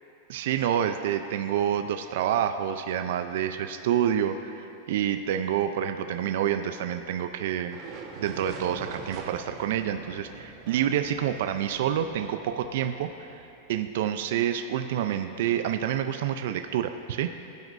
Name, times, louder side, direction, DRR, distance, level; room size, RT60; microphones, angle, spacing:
voice 1, 0.3-7.8 8.2-17.4, right 10 dB, 65° right, 8 dB, 0.5 m, -28 dB
sound 1, 7.7-13.9, right 4 dB, 35° right, 1.3 m, -44 dB
21.0 x 9.3 x 2.6 m, 2.8 s
supercardioid pair, 155°, 0 cm